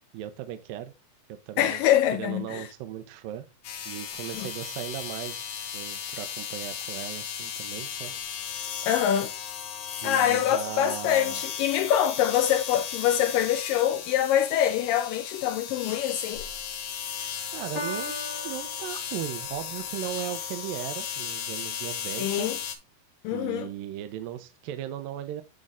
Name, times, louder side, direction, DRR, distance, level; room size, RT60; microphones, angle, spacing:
voice 1, 0.1-0.9 1.3-1.8 2.1-3.5 3.9-5.5 5.7-8.1 10.0-11.4 17.5-18.2 18.4-22.5 23.3-25.4, right 12 dB, 75° right, 2.3 m, -37 dB
voice 2, 1.6-2.7 4.3-4.5 8.9-9.3 10.0-16.5 22.2-22.6 23.2-23.7, left 10 dB, 85° left, 1.9 m, -25 dB
sound 1, 3.6-22.8, left 8 dB, 70° left, 2.9 m, -36 dB
Piano, 17.7-19.7, left 1 dB, 40° left, 1.8 m, -38 dB
10.5 x 3.8 x 3.6 m
omnidirectional pair, 4.5 m